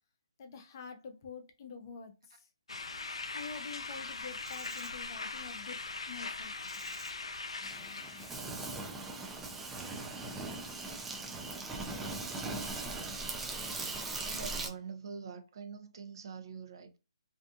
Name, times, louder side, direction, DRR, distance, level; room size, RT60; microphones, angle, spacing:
voice 1, 0.4-2.5 3.3-5.8 6.1-6.5 7.6-8.3, left 5 dB, 40° left, 0.6 m, -47 dB
sound 1, 2.7-8.4, left 3 dB, 90° left, 0.4 m, -41 dB
Insect, 4.0-14.7, right 3 dB, 5° right, 0.4 m, -40 dB
voice 2, 14.2-17.0, right 6 dB, 55° right, 0.6 m, -45 dB
2.6 x 2.4 x 2.3 m
hypercardioid pair, 155°, 3 cm